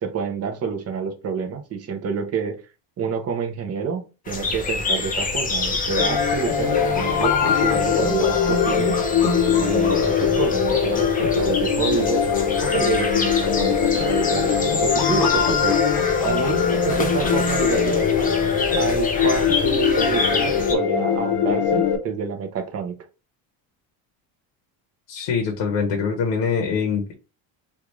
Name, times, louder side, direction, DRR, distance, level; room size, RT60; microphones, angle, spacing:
voice 1, 0.0-2.6 3.0-9.0 9.5-12.2 12.6-15.8 16.2-18.0 18.8-22.9, right 6 dB, 35° right, 0.6 m, -28 dB
sound 1, 4.3-20.7, left 3 dB, 20° left, 0.5 m, -27 dB
sound 2, 6.0-22.0, left 7 dB, 55° left, 0.8 m, -21 dB
voice 2, 25.1-27.1, left 6 dB, 80° left, 1.0 m, -24 dB
3.3 x 2.4 x 3.0 m
cardioid pair, 145°, 46 cm